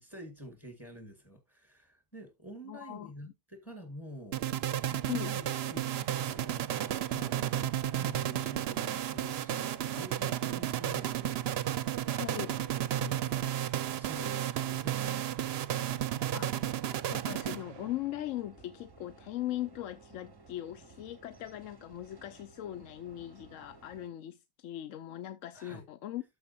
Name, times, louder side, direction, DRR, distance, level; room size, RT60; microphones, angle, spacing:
voice 1, 0.0-11.5 13.0-13.5 13.9-15.4 25.5-25.8, right 1 dB, 20° left, 1.7 m, -48 dB
voice 2, 2.7-3.3 5.0-5.4 12.1-12.6 16.3-16.5 17.1-26.2, left 13 dB, 75° left, 1.0 m, -39 dB
sound 1, 4.3-18.0, right 11 dB, 60° right, 0.7 m, -33 dB
sound 2, 16.6-24.1, right 4 dB, 25° right, 0.7 m, -57 dB
13.5 x 4.7 x 2.7 m
omnidirectional pair, 1.3 m